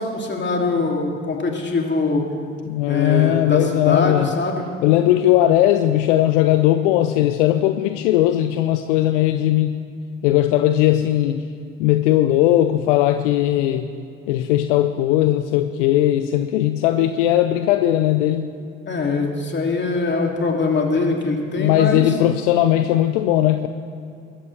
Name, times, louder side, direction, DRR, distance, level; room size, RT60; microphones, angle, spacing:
voice 1, 0.0-2.2 2.9-4.7 18.9-22.1, left 3 dB, 30° left, 1 dB, 2.8 m, -22 dB
voice 2, 2.7-4.3 4.8-9.8 10.2-11.4 11.8-13.9 14.3-18.5 21.6-23.7, left 13 dB, 70° left, 9 dB, 0.7 m, -18 dB
21.5 x 13.5 x 3.4 m, 2.5 s
figure-of-eight pair, 55°, 38 cm